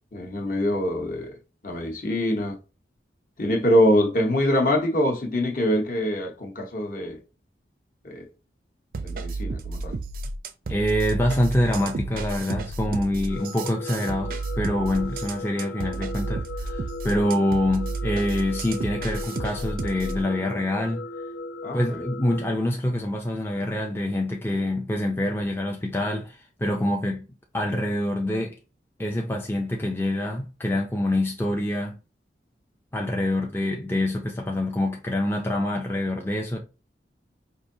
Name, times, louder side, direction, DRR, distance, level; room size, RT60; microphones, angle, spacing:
voice 1, 0.1-1.3 1.6-2.6 3.4-7.2 8.0-8.3 9.0-9.9 21.6-22.0, equal, 50° left, 1.0 m, -24 dB
sound 1, 8.9-20.2, right 3 dB, 50° right, 0.4 m, -32 dB
voice 2, 10.7-21.1 21.7-27.2 27.5-28.6 29.0-32.0 32.9-36.6, left 1 dB, 15° left, 0.4 m, -26 dB
sound 2, 13.3-22.5, left 2 dB, 75° left, 0.6 m, -37 dB
4.8 x 2.6 x 2.7 m
head